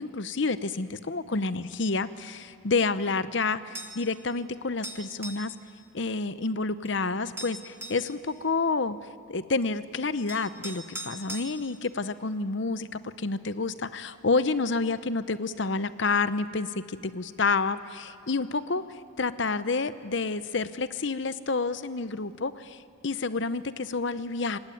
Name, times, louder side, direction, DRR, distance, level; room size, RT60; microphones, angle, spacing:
voice 1, 0.0-5.5 5.9-9.0 9.3-18.8 19.2-22.8 23.0-24.6, left 3 dB, 60° left, 13 dB, 0.8 m, -29 dB
sound 1, 3.7-4.0 4.8-5.5 6.8-6.9 7.4-8.1 9.6-9.7 10.3-11.5, right 1 dB, 10° right, 1.5 m, -39 dB
26.0 x 18.5 x 9.4 m, 2.4 s
head